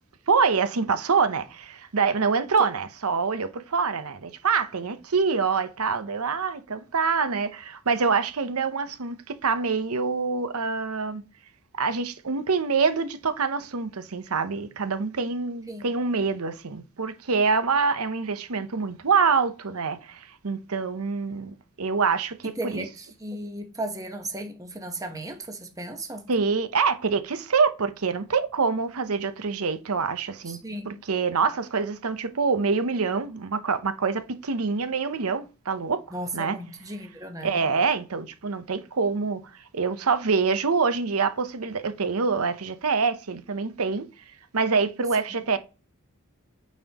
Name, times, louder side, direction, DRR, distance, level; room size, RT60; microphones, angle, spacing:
voice 1, 0.3-11.2 11.8-22.9 26.3-36.0 36.3-36.6 37.4-39.4 39.7-44.1 44.5-45.6, right 5 dB, 85° right, 0.8 m, -25 dB
voice 2, 22.6-26.3 30.6-30.9 36.1-37.5, right 1 dB, 15° right, 1.0 m, -35 dB
8.9 x 4.3 x 2.9 m
head